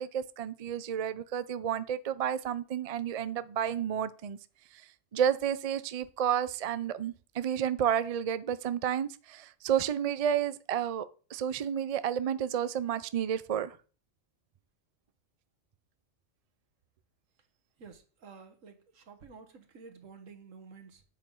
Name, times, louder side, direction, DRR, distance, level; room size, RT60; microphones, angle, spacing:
voice 1, 0.0-4.4 4.7-4.8 5.1-11.1 11.3-13.8, right 9 dB, 55° right, 0.4 m, -31 dB
voice 2, 17.8-21.0, right 5 dB, 75° right, 1.6 m, -51 dB
9.1 x 7.6 x 3.8 m
omnidirectional pair, 1.3 m